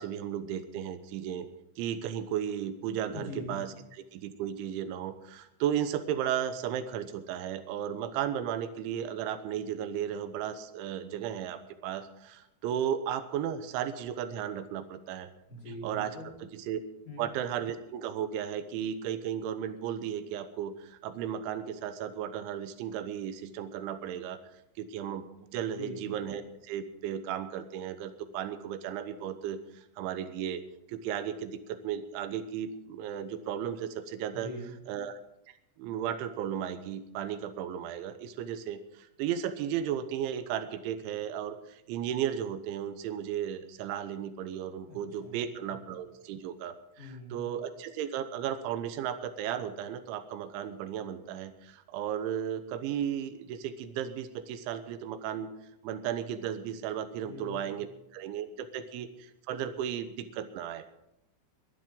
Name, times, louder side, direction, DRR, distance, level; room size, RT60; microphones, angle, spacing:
voice 1, 0.0-1.5 1.8-3.7 4.1-15.3 15.8-16.1 16.4-16.8 17.2-24.4 24.8-25.2 25.5-30.6 30.9-34.5 34.9-35.2 35.8-46.8 47.3-55.5 55.8-57.9 58.1-60.8, right 9 dB, 85° right, 11 dB, 3.4 m, -35 dB
voice 2, 3.1-3.6 15.5-16.4 17.0-17.3 25.7-26.0 34.3-34.7 44.9-45.4 45.7-45.8 47.0-47.4 57.2-57.7, left 2 dB, 30° left, -3 dB, 5.1 m, -43 dB
22.5 x 11.0 x 3.8 m, 0.86 s
omnidirectional pair, 5.3 m